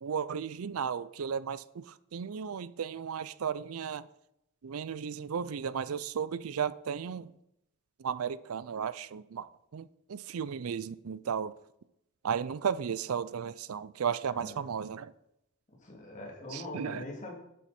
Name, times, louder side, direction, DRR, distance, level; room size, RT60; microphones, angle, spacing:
voice 1, 0.0-4.1 4.6-7.3 8.0-11.5 12.2-15.1 16.5-17.0, right 7 dB, 75° right, 0.5 m, -35 dB
voice 2, 15.8-17.3, left 1 dB, 35° left, 3.0 m, -42 dB
11.0 x 8.9 x 4.3 m
head